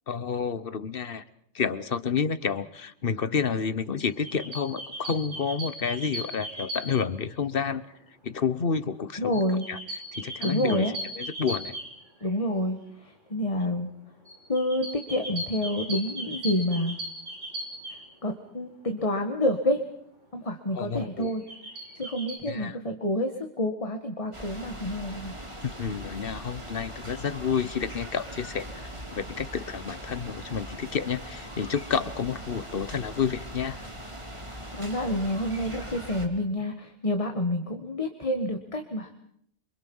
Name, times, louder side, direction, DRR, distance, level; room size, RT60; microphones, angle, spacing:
voice 1, 0.1-1.2 1.5-7.8 8.2-9.4 9.7-9.8 10.1-11.7 20.7-21.3 22.5-22.8 25.6-33.8, left 6 dB, 50° left, 14 dB, 1.3 m, -30 dB
sound 1, 4.0-7.2 9.3-12.4 14.3-18.0 21.2-22.4, equal, 80° right, 6.6 m, -37 dB
voice 2, 9.2-9.7 10.4-11.0 12.2-13.9 14.5-17.0 18.2-19.8 20.3-21.4 22.0-25.3 34.7-39.2, left 1 dB, 30° left, 5 dB, 1.8 m, -28 dB
sound 2, 24.3-36.3, equal, 25° right, 3.1 m, -40 dB
28.0 x 25.5 x 5.6 m, 0.69 s
omnidirectional pair, 1.2 m